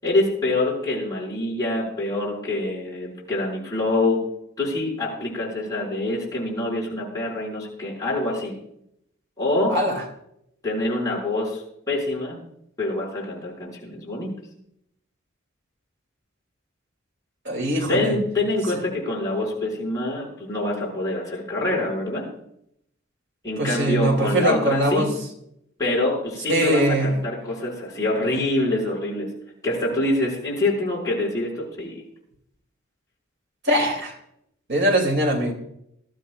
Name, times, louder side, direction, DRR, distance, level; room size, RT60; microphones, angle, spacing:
voice 1, 0.0-4.2 4.6-8.5 9.4-9.8 10.6-11.6 11.9-12.4 12.8-14.3 17.9-22.3 23.4-25.1 25.8-29.3 29.6-32.0, left 2 dB, 15° left, -5 dB, 6.0 m, -25 dB
voice 2, 9.7-10.0 17.4-18.2 23.6-25.1 26.5-27.1 33.6-34.1 34.7-35.5, right 1 dB, 60° right, 2 dB, 3.0 m, -21 dB
23.5 x 12.5 x 2.5 m, 0.74 s
head